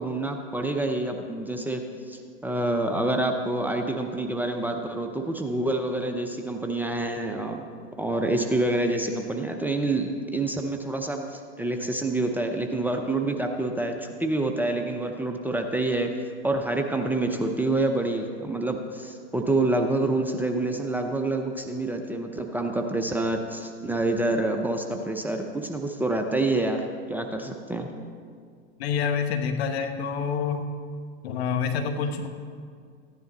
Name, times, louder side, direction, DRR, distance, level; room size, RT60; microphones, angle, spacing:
voice 1, 0.0-7.6 8.0-16.1 16.4-27.9, right 2 dB, 5° right, 3 dB, 0.6 m, -27 dB
voice 2, 28.8-30.7 31.2-32.3, left 6 dB, 65° left, 6 dB, 1.3 m, -27 dB
14.5 x 10.5 x 4.0 m, 2.1 s
hypercardioid pair, 110°, 34 cm